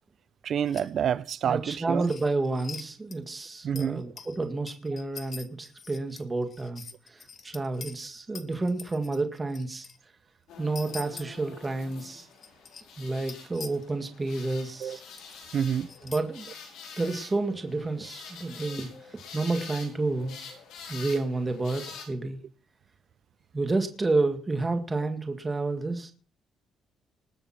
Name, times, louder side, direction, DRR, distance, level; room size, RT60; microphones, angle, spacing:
voice 1, 0.4-2.1 3.6-4.0 14.8-15.0 15.5-15.9, right 8 dB, 60° right, 0.7 m, -28 dB
sound 1, 0.7-0.9 2.0-2.8 3.1-3.2 3.8-8.0 8.4-10.0 10.8-11.2 12.3-12.8 13.2-13.9 14.8-14.9 15.2-15.4 15.9-16.2, left 5 dB, 45° left, 1.3 m, -44 dB
voice 2, 1.4-9.9 10.6-12.3 13.0-15.0 16.0-16.5 17.0-20.4 20.9-22.4 23.5-26.1, right 3 dB, 25° right, 1.9 m, -30 dB
Bumblebee flowers noises, 10.5-22.0, left 5 dB, 85° left, 6.1 m, -46 dB
20.0 x 7.0 x 5.8 m
cardioid pair, 90°, 0 cm